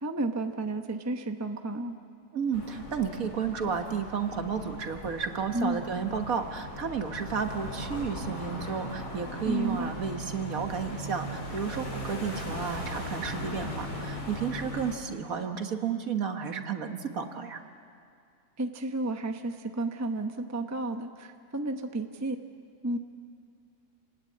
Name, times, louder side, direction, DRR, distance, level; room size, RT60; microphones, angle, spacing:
voice 1, 0.0-2.0 5.5-5.8 9.4-9.9 18.6-22.4 22.8-23.0, right 2 dB, 15° right, 6 dB, 0.8 m, -32 dB
voice 2, 2.3-17.6, right 6 dB, 55° right, 6 dB, 1.7 m, -32 dB
sound 1, 2.5-14.9, left 1 dB, 65° left, 4.3 m, -39 dB
28.5 x 20.0 x 8.6 m, 2.4 s
omnidirectional pair, 1.8 m